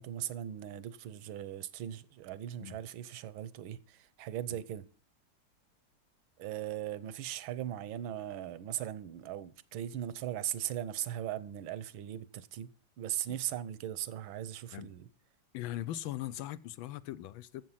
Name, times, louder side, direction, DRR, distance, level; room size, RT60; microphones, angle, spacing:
voice 1, 0.0-4.9 6.4-12.7 13.0-15.1, right 11 dB, 85° right, 1.6 m, -39 dB
voice 2, 15.5-17.6, left 13 dB, 85° left, 1.5 m, -39 dB
14.0 x 7.6 x 5.7 m
omnidirectional pair, 2.1 m